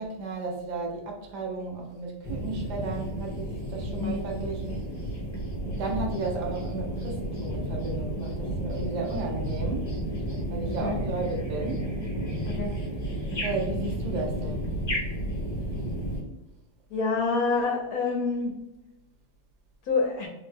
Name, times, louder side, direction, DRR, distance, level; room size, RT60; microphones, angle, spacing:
voice 1, 0.0-4.9 5.6-10.0 10.5-11.9 13.4-14.8, right 3 dB, 70° right, 0 dB, 0.4 m, -34 dB
sound 1, 2.2-16.2, right 1 dB, 20° left, 0.7 m, -32 dB
voice 2, 4.0-4.3 10.8-11.0 12.5-12.7 16.9-18.5 19.9-20.3, left 4 dB, 65° left, 1 dB, 1.0 m, -27 dB
4.3 x 2.1 x 3.3 m, 0.95 s
omnidirectional pair, 1.9 m